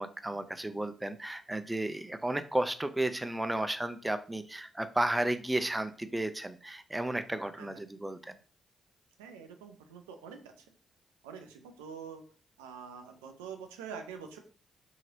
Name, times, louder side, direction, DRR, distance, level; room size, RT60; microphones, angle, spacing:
voice 1, 0.0-8.4, right 1 dB, 15° right, 10 dB, 0.4 m, -33 dB
voice 2, 9.2-10.5 11.2-12.2 12.6-14.4, right 6 dB, 90° right, 5 dB, 0.3 m, -45 dB
2.9 x 2.8 x 2.8 m, 0.39 s
hypercardioid pair, 40°, 0 cm